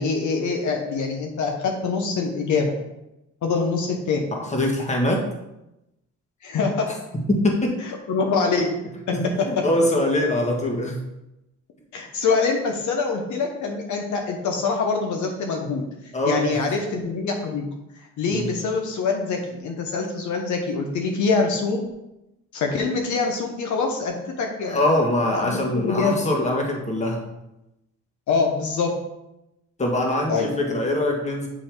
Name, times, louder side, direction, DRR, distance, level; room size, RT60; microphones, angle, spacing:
voice 1, 0.0-2.7 3.4-4.3 6.4-6.9 7.8-8.7 9.1-9.3 11.9-15.8 16.2-17.6 18.2-21.9 22.5-24.9 25.3-26.2 28.3-28.9 30.3-30.5, left 4 dB, 75° left, 2 dB, 1.1 m, -24 dB
voice 2, 4.3-5.2 7.3-7.8 9.1-11.0 16.1-16.6 18.3-18.5 24.6-27.2 29.8-31.5, left 1 dB, 25° left, 0 dB, 1.7 m, -23 dB
8.7 x 3.2 x 4.6 m, 0.90 s
cardioid pair, 90°, 30 cm